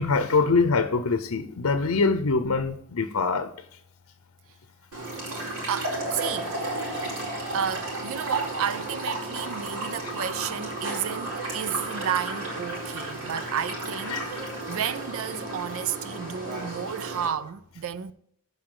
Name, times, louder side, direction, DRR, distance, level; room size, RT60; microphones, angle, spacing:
voice 1, 0.0-3.5 6.9-7.0 10.0-10.1 14.1-14.4 15.8-15.9, left 4 dB, 80° left, 0.7 m, -24 dB
sound 1, 4.9-17.3, right 2 dB, 85° right, 4.5 m, -33 dB
voice 2, 5.7-6.5 7.5-18.1, right 8 dB, 65° right, 0.4 m, -32 dB
13.5 x 5.7 x 3.8 m
head